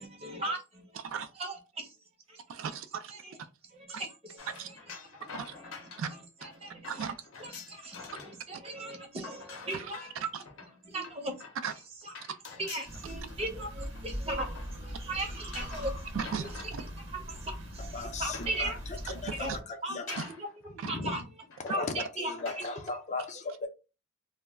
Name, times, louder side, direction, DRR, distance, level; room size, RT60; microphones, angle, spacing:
voice 1, 0.0-0.9 1.4-2.0 2.3-2.4 3.1-3.3 3.9-4.8 5.5-5.7 6.1-7.0 7.4-10.3 10.7-11.3 12.0-12.1 12.6-14.5 14.8-15.9 17.1-18.8 19.4-19.5 19.8-21.2 21.7-22.6, right 2 dB, 30° right, 0.6 m, -38 dB
voice 2, 2.5-3.1 4.5-4.7 5.3-5.5 6.0-6.1 6.9-7.2 9.7-9.9 10.3-10.4 11.6-11.7 16.1-16.8 19.3-19.6 20.2-20.3 20.8-20.9, right 6 dB, 75° right, 0.3 m, -36 dB
sound 1, 4.4-8.4 8.6-15.1 15.5-17.6 18.0-19.0 19.6-19.7 20.1-20.7 21.0-21.1 21.5-21.9 22.4-22.9, left 5 dB, 75° left, 0.6 m, -47 dB
sound 2, 12.9-19.6, equal, 55° right, 0.9 m, -41 dB
voice 3, 17.8-18.7 19.1-20.2 20.8-21.1 21.6-23.7, left 3 dB, 35° left, 0.4 m, -37 dB
2.2 x 2.0 x 3.4 m
head